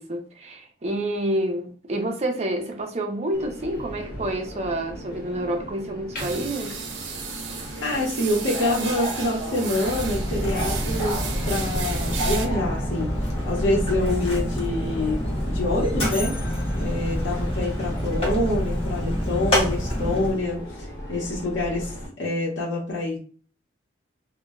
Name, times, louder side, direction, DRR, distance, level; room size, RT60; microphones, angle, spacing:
voice 1, 0.0-6.8, right 1 dB, 35° right, 0.5 m, -28 dB
Subway metro underground, 3.3-22.1, equal, 50° left, 1.1 m, -36 dB
sound 1, 6.2-12.5, right 6 dB, 85° right, 0.6 m, -35 dB
voice 2, 7.8-11.2 11.5-15.2 15.5-16.3 16.7-23.2, left 1 dB, 85° left, 0.8 m, -26 dB
Mechanisms, 9.7-20.5, equal, 30° left, 0.8 m, -27 dB
2.2 x 2.0 x 3.5 m
head